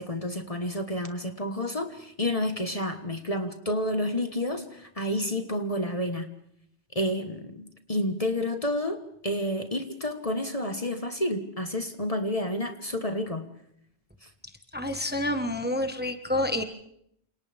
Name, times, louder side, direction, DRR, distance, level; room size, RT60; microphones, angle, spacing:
voice 1, 0.0-6.3 6.9-13.4 14.2-14.3, left 1 dB, 30° left, 6 dB, 1.5 m, -30 dB
voice 2, 14.7-16.6, left 1 dB, 10° right, 6 dB, 1.4 m, -28 dB
29.0 x 27.5 x 3.5 m, 0.72 s
omnidirectional pair, 1.2 m